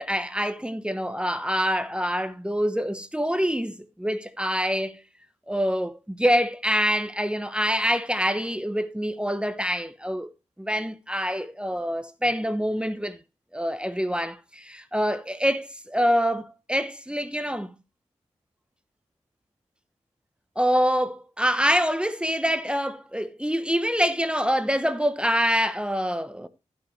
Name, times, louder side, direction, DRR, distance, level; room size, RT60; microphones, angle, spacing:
voice 1, 0.0-5.0 5.5-10.3 10.6-13.2 13.5-17.7 20.6-26.5, equal, 10° right, 1.0 m, -25 dB
15.5 x 6.6 x 3.1 m
cardioid pair, 50°, 12 cm